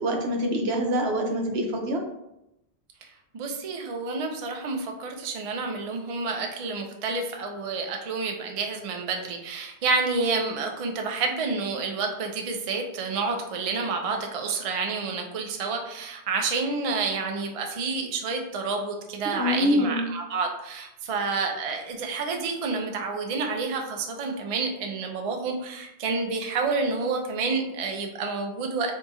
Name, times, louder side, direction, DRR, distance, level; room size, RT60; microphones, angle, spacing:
voice 1, 0.0-2.0 19.2-20.1, equal, 70° right, 2 dB, 0.9 m, -25 dB
voice 2, 3.3-28.9, right 4 dB, 55° right, 3 dB, 0.4 m, -29 dB
2.7 x 2.4 x 4.0 m, 0.86 s
omnidirectional pair, 1.1 m